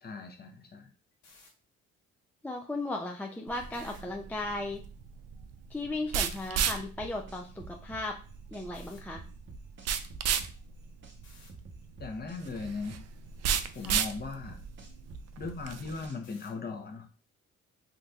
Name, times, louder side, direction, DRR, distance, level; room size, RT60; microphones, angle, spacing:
voice 1, 0.0-0.9 12.0-13.0 13.7-14.6 15.4-17.1, left 4 dB, 35° left, 4 dB, 0.8 m, -38 dB
sound 1, 1.1-1.5 3.7-4.0 6.2-6.5 8.7-9.0 11.2-11.5 13.7-14.0 16.2-16.6, left 3 dB, 75° left, 1.4 m, -57 dB
voice 2, 2.4-4.8 5.7-8.2 8.5-9.2 13.8-14.0, left 2 dB, 5° left, 2 dB, 0.4 m, -36 dB
sound 2, 3.5-16.1, right 7 dB, 55° right, 0.4 m, -35 dB
sound 3, 6.7-8.7 9.2-11.2 11.5-13.7 14.2-16.4, right 3 dB, 40° right, 0.8 m, -48 dB
3.8 x 2.6 x 2.3 m, 0.37 s
cardioid pair, 90°, 30 cm